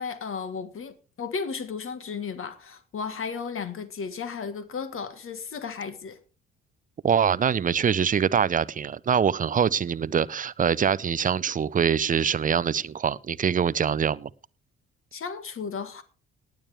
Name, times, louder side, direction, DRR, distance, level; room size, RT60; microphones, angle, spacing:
voice 1, 0.0-6.2 15.1-16.0, left 5 dB, 40° left, 1.7 m, -34 dB
voice 2, 7.0-14.3, right 7 dB, 25° right, 0.7 m, -24 dB
18.5 x 8.8 x 3.5 m
figure-of-eight pair, 50°, 31 cm